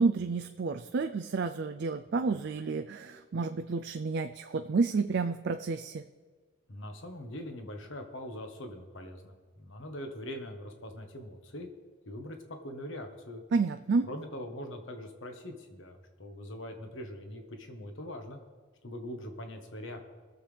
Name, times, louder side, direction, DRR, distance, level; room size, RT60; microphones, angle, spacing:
voice 1, 0.0-6.0 13.5-14.1, right 4 dB, 55° right, 8 dB, 0.4 m, -30 dB
voice 2, 6.7-11.7 12.0-13.4 14.0-18.4 18.8-20.0, left 1 dB, 60° left, 4 dB, 1.4 m, -42 dB
22.0 x 7.3 x 3.4 m, 1.5 s
head